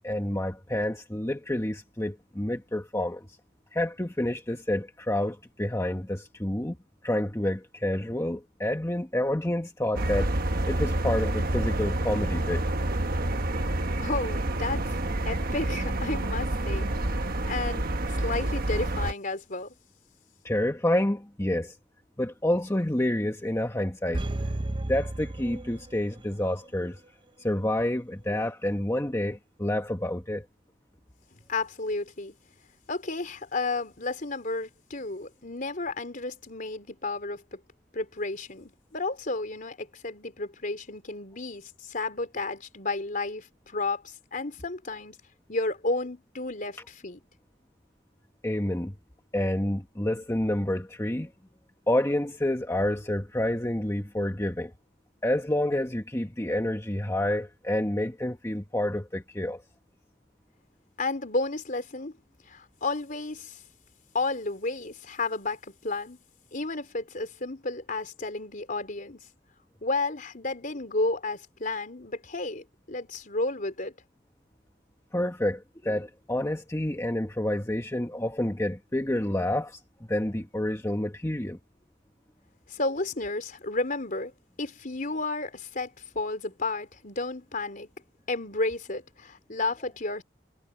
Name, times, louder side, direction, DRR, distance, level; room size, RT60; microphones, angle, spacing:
voice 1, 0.0-3.3 3.7-6.8 7.0-12.7 20.4-21.8 22.2-24.2 24.9-27.0 27.4-30.4 48.4-48.9 49.3-51.3 51.9-54.7 55.2-59.6 75.1-81.6, left 1 dB, 15° left, 1.2 m, -28 dB
sound 1, 10.0-19.1, right 1 dB, 50° right, 1.4 m, -28 dB
voice 2, 14.0-15.0 15.3-17.2 17.5-19.7 31.5-32.3 32.9-37.6 37.9-45.2 45.5-47.2 61.0-62.1 62.5-63.6 64.1-66.2 66.5-69.2 69.8-73.9 82.7-84.3 84.6-87.9 88.3-90.2, left 3 dB, 45° left, 3.9 m, -32 dB
sound 2, 24.1-26.3 26.6-26.7, right 1 dB, 25° right, 0.6 m, -33 dB
head